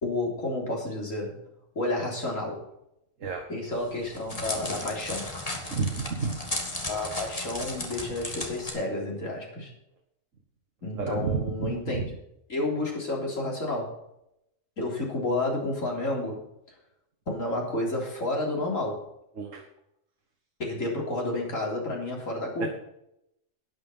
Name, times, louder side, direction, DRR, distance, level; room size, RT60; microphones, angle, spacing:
voice 1, 0.0-1.4 1.7-2.6 3.5-5.3 6.9-9.7 10.8-12.2 12.5-14.0 14.8-16.4 17.3-19.1 20.6-22.7, left 2 dB, 80° left, -2 dB, 4.1 m, -30 dB
Crackle, 3.7-8.7, left 1 dB, 30° left, 2.3 m, -35 dB
voice 2, 5.7-6.4 11.0-12.1 19.4-19.6 22.6-22.7, right 5 dB, 75° right, 2 dB, 1.8 m, -30 dB
12.0 x 9.9 x 5.6 m, 0.79 s
omnidirectional pair, 1.3 m